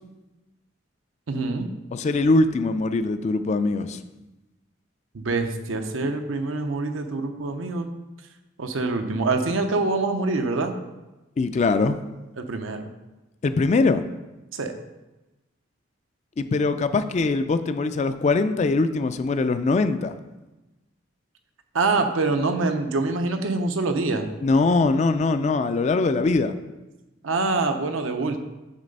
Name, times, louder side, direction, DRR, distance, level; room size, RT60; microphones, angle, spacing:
voice 1, 1.3-1.7 5.1-7.9 8.6-10.7 12.4-12.9 14.5-14.7 21.7-24.3 27.2-28.4, right 3 dB, 80° right, 6 dB, 0.6 m, -25 dB
voice 2, 1.9-4.0 11.4-12.0 13.4-14.0 16.4-20.2 24.4-26.5, left 3 dB, 35° left, 11 dB, 0.3 m, -22 dB
7.4 x 3.3 x 5.3 m, 1.1 s
head